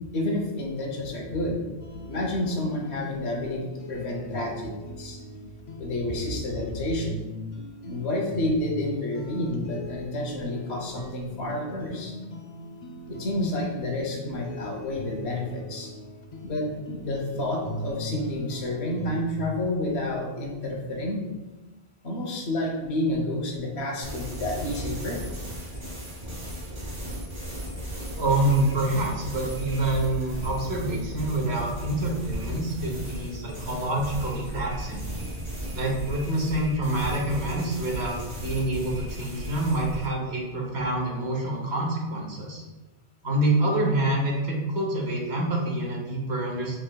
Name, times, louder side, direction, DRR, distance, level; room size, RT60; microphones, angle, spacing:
voice 1, 0.1-1.6 2.1-5.2 5.8-7.2 7.8-12.1 13.1-15.9 16.4-21.2 22.0-25.2, left 1 dB, 85° left, 1 dB, 1.1 m, -29 dB
sound 1, 1.8-19.4, left 1 dB, 45° left, 0.4 m, -40 dB
sound 2, 24.0-40.1, equal, 60° right, 1.6 m, -35 dB
voice 2, 28.2-35.0 35.7-42.6 43.2-46.8, right 1 dB, 85° right, -1 dB, 1.2 m, -27 dB
5.7 x 3.0 x 2.2 m, 1.1 s
omnidirectional pair, 1.1 m